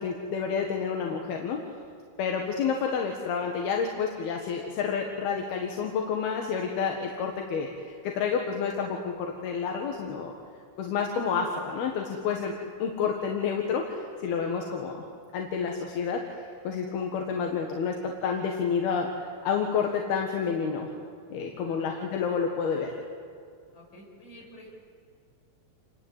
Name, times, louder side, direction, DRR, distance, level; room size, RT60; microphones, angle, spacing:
voice 1, 0.0-1.6 2.2-10.3 10.8-12.5 12.8-15.0 15.3-20.9 21.3-22.9, left 6 dB, 85° left, 1 dB, 3.6 m, -29 dB
voice 2, 21.6-22.2 23.7-24.7, equal, 60° left, -2 dB, 8.0 m, -49 dB
28.0 x 22.5 x 8.4 m, 2.3 s
omnidirectional pair, 4.3 m